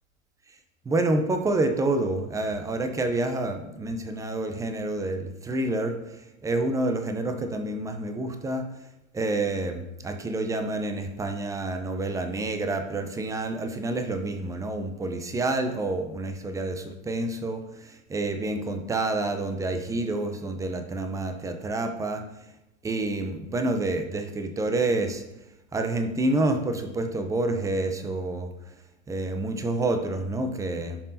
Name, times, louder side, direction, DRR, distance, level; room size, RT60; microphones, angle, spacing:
voice 1, 0.9-8.7 9.1-22.3 22.8-25.2 25.7-28.5 29.1-31.0, right 2 dB, 10° right, 7 dB, 0.5 m, -28 dB
11.0 x 5.2 x 2.7 m, 0.91 s
hypercardioid pair, 110°, 41 cm